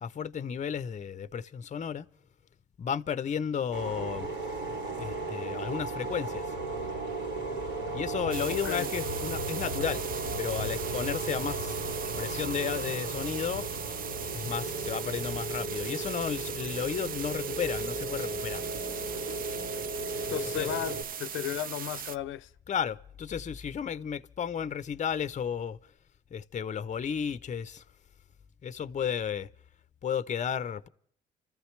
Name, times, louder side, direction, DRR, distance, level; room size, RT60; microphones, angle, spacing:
voice 1, 0.0-2.1 2.8-4.3 5.0-6.5 7.9-10.0 10.4-11.8 12.2-13.6 14.3-18.7 20.3-20.7 22.7-25.8 26.3-27.8 28.6-29.5 30.0-30.9, left 7 dB, 40° left, 0.6 m, -33 dB
sound 1, 3.7-21.0, right 2 dB, 85° right, 5.4 m, -35 dB
sound 2, 8.3-22.2, right 8 dB, 45° right, 0.5 m, -39 dB
voice 2, 8.5-8.9 20.3-22.5, left 12 dB, 80° left, 0.6 m, -35 dB
29.5 x 14.0 x 3.2 m
cardioid pair, 90°, 20 cm